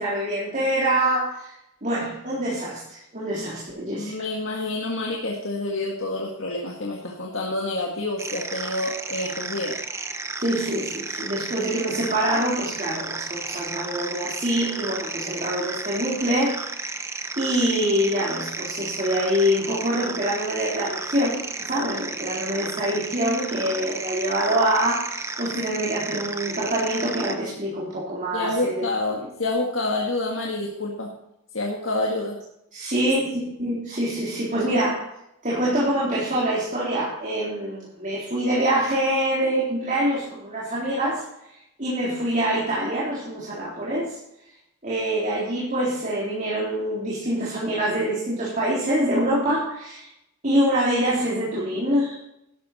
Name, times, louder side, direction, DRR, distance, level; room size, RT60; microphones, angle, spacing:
voice 1, 0.0-1.5 1.8-4.1 10.4-17.0 17.4-28.9 32.7-35.1 35.4-41.2 41.5-44.2 44.8-50.1 50.4-52.3, right 1 dB, 40° right, -6 dB, 3.7 m, -25 dB
voice 2, 4.0-9.8 28.3-31.1 31.5-32.4, left 2 dB, 65° left, -1 dB, 1.9 m, -28 dB
sound 1, 8.2-27.3, right 3 dB, 15° right, 0.8 m, -33 dB
13.0 x 11.5 x 4.3 m, 0.81 s
head